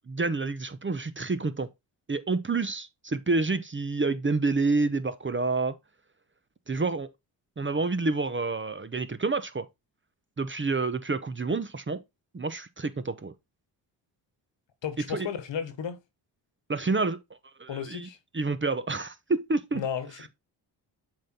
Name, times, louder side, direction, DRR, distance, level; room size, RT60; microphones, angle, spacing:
voice 1, 0.1-1.7 2.1-5.8 6.7-7.1 7.6-9.7 10.4-12.0 12.3-13.3 15.1-15.3 16.7-17.2 17.6-18.1 18.3-19.8, right 3 dB, 25° right, 0.9 m, -28 dB
voice 2, 14.8-16.0 17.7-18.2 19.7-20.3, left 8 dB, 60° left, 1.4 m, -33 dB
7.4 x 3.9 x 4.3 m
supercardioid pair, 45°, 49 cm